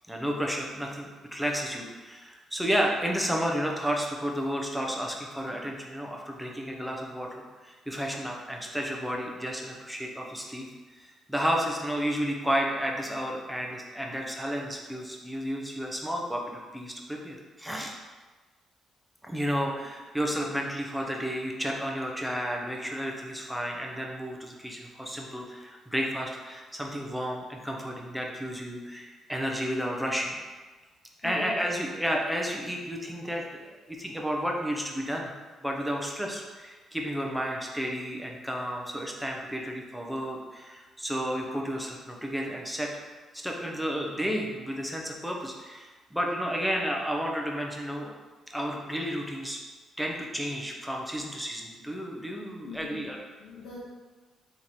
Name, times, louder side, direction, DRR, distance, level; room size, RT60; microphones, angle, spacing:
voice 1, 0.1-18.0 19.2-30.3 31.2-35.3 35.6-42.9 43.3-48.1 48.5-49.6 50.0-53.2, equal, ahead, 0 dB, 0.7 m, -32 dB
voice 2, 31.2-31.6 52.6-53.0 53.4-53.8, left 5 dB, 85° left, -8 dB, 1.0 m, -41 dB
3.8 x 3.1 x 4.2 m, 1.3 s
cardioid pair, 90°, 0 cm